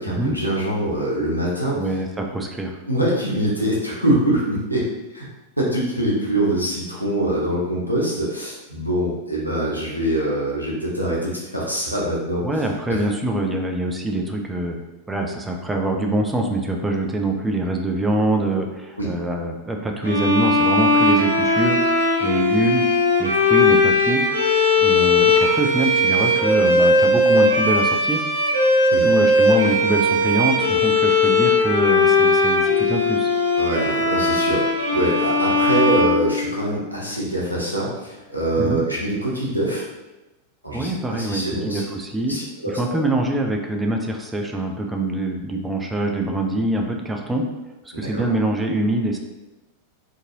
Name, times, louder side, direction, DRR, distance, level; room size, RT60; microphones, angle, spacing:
voice 1, 0.0-1.8 2.9-4.9 5.1-5.2 5.6-13.0 19.0-19.1 28.9-29.0 33.6-39.8 40.6-41.8 42.3-42.7 47.9-48.2, right 1 dB, 90° left, -5 dB, 0.8 m, -24 dB
voice 2, 1.7-2.8 12.4-14.8 15.1-22.8 23.2-24.2 24.8-28.2 28.8-33.3 38.6-38.8 40.7-42.4 42.7-47.5 47.8-49.2, right 2 dB, 10° right, 2 dB, 0.4 m, -24 dB
sound 1, 20.0-36.9, left 2 dB, 90° right, 0.5 m, -18 dB
2.7 x 2.5 x 2.6 m, 1.0 s
figure-of-eight pair, 90°, 0 cm